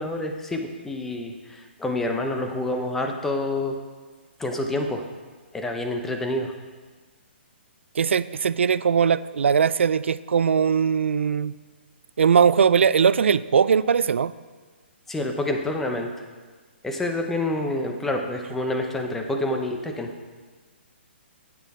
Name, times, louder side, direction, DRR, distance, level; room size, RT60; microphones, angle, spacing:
voice 1, 0.0-3.7 4.4-5.0 5.5-6.5 15.1-16.2 16.8-20.1, left 1 dB, 5° left, 3 dB, 0.6 m, -28 dB
voice 2, 8.0-11.5 12.2-14.3, right 7 dB, 85° right, 17 dB, 0.4 m, -20 dB
9.1 x 8.5 x 4.2 m, 1.4 s
hypercardioid pair, 165°, 6 cm